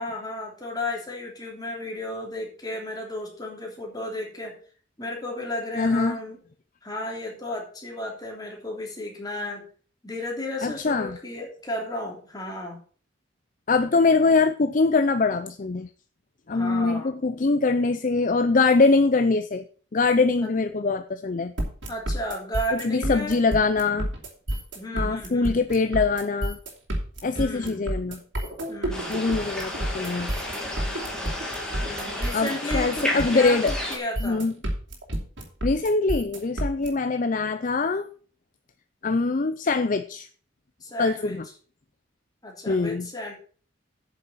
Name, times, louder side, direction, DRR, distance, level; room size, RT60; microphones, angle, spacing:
voice 1, 0.0-4.6 5.0-6.4 6.8-9.7 10.0-12.8 16.5-17.1 20.4-20.5 21.9-23.4 24.7-25.6 27.3-27.8 28.7-29.2 31.8-34.4 40.8-41.4 42.4-43.3, left 1 dB, 20° left, 0 dB, 3.1 m, -33 dB
voice 2, 5.8-6.2 10.6-11.2 13.7-15.9 16.5-19.6 19.9-21.5 22.8-24.1 24.9-26.6 27.2-28.2 29.1-30.3 32.3-33.7 34.2-34.5 35.6-38.1 39.0-40.3 41.0-41.5 42.7-43.1, left 3 dB, 45° left, 10 dB, 0.5 m, -23 dB
sound 1, 21.6-36.9, right 1 dB, 75° right, 3.3 m, -30 dB
sound 2, 28.9-34.0, left 1 dB, 5° left, 2.7 m, -32 dB
8.7 x 7.0 x 6.4 m, 0.42 s
head